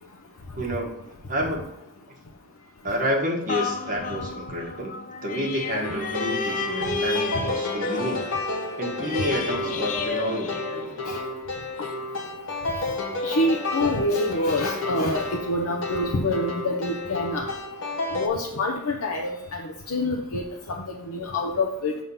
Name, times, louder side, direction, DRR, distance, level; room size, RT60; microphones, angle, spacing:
voice 1, 0.6-1.0 1.3-1.7 2.8-4.9 5.2-8.2 8.8-11.0, equal, 35° right, -1 dB, 1.5 m, -29 dB
sound 1, 3.5-11.3 11.8-11.9, left 5 dB, 35° left, 0.4 m, -32 dB
sound 2, 5.8-18.3, left 2 dB, 60° left, 1.2 m, -31 dB
voice 2, 13.2-17.5 18.1-22.0, left 1 dB, 85° left, 1 dB, 0.7 m, -26 dB
6.7 x 3.7 x 5.6 m, 0.80 s
head